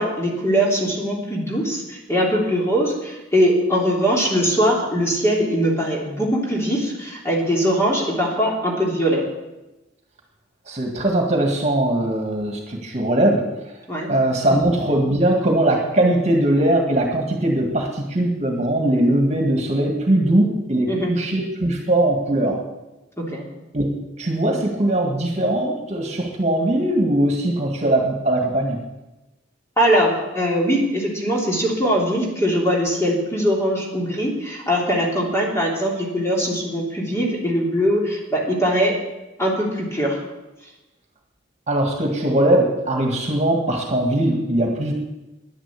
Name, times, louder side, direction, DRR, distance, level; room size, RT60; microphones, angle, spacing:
voice 1, 0.0-9.2 13.9-14.1 20.8-21.1 23.2-23.5 29.8-38.9 39.4-40.2, equal, 15° left, -2 dB, 3.1 m, -21 dB
voice 2, 10.7-13.5 14.1-22.6 23.7-28.8 41.7-44.9, right 1 dB, 35° right, 2 dB, 2.0 m, -20 dB
10.5 x 10.5 x 8.4 m, 1.0 s
head